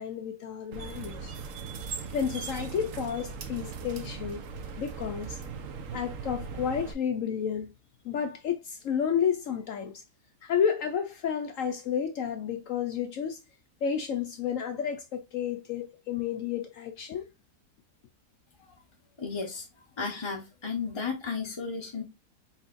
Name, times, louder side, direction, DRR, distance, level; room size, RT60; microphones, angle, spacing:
voice 1, 0.0-1.4 2.1-4.4 4.8-5.4 5.9-7.7 8.0-10.0 10.4-13.4 13.8-17.2, left 7 dB, 70° left, 0.8 m, -31 dB
sound 1, 0.7-6.9, right 5 dB, 60° right, 1.0 m, -39 dB
voice 2, 19.2-19.7 20.0-22.0, left 5 dB, 30° left, 0.5 m, -33 dB
4.4 x 4.1 x 2.5 m
omnidirectional pair, 1.8 m